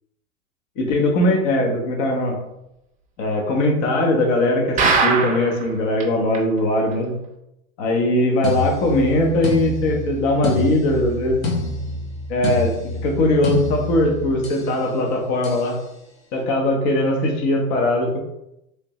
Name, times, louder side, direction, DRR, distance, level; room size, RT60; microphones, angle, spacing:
voice 1, 0.8-2.4 3.2-7.1 7.8-11.5 12.3-15.8 16.3-18.2, left 1 dB, 45° left, 1 dB, 0.9 m, -20 dB
sound 1, 4.8-5.6 6.0-6.1 6.3-6.4 6.9-7.0, right 4 dB, 20° right, 0.5 m, -19 dB
sound 2, 8.4-14.7 15.4-15.7, left 2 dB, 90° left, 1.0 m, -27 dB
3.3 x 2.6 x 3.0 m, 0.84 s
hypercardioid pair, 105°, 40 cm